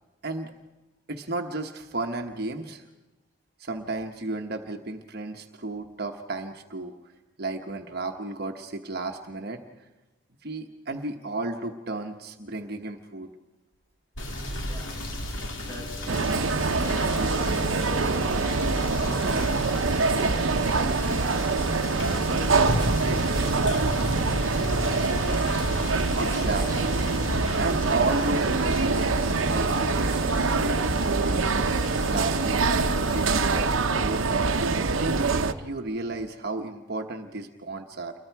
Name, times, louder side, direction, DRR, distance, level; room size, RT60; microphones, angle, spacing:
voice 1, 1.1-2.9 3.6-6.9 7.4-9.6 10.4-13.3 26.2-27.0 27.6-31.5 32.1-32.7 33.1-38.1, right 2 dB, 55° right, 4 dB, 1.2 m, -33 dB
Rain / Motor vehicle (road), 14.2-33.7, left 1 dB, 75° left, 2.8 m, -34 dB
voice 2, 14.6-15.0 15.6-18.1 18.7-21.4 21.9-23.7 24.2-25.5, equal, 15° left, -3 dB, 7.7 m, -43 dB
sound 1, 16.1-35.5, right 3 dB, 90° right, 0.8 m, -25 dB
29.0 x 23.0 x 4.7 m, 1.0 s
head